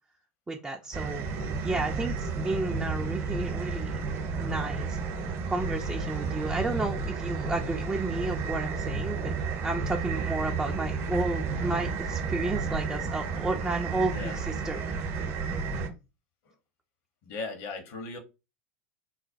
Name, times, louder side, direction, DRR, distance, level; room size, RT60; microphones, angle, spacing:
voice 1, 0.5-1.2 1.6-4.0 4.3-9.3 9.6-15.1, right 2 dB, 10° right, 0.4 m, -32 dB
sound 1, 0.9-15.9, right 4 dB, 40° right, 0.7 m, -32 dB
voice 2, 17.2-18.2, left 3 dB, 50° left, 1.0 m, -37 dB
4.1 x 2.1 x 2.6 m
figure-of-eight pair, 80°, 7 cm